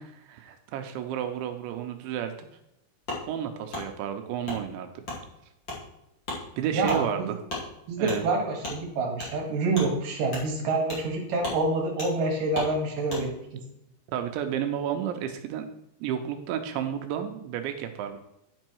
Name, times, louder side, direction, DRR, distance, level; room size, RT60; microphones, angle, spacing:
voice 1, 0.0-2.3 3.3-5.0 6.6-7.4 8.0-8.3 14.1-15.7 16.0-18.2, right 9 dB, 85° right, 6 dB, 2.7 m, -32 dB
Wood, 3.1-3.2 3.7-3.8 4.4-4.6 5.0-5.2 5.6-5.8 6.2-6.4 6.8-7.0 7.5-7.6 8.1-8.2 8.6-8.8 9.2-9.3 9.7-9.9 10.3-10.5 10.9-11.1 11.4-11.6 12.0-12.1 12.5-12.7 13.1-13.2, left 2 dB, 35° left, 1.9 m, -34 dB
voice 2, 6.7-7.3 7.9-13.3, right 3 dB, 65° right, 0 dB, 2.3 m, -27 dB
10.5 x 5.4 x 4.6 m, 0.83 s
omnidirectional pair, 5.8 m